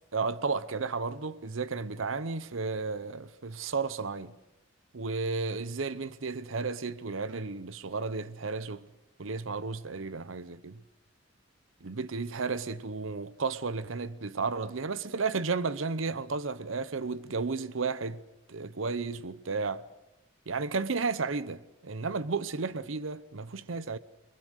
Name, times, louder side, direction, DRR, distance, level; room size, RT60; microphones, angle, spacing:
voice 1, 0.1-4.4 4.9-8.8 9.2-10.8 11.8-18.2 18.5-19.8 20.5-24.0, right 4 dB, 85° right, 0.8 m, -33 dB
29.0 x 21.0 x 6.6 m
head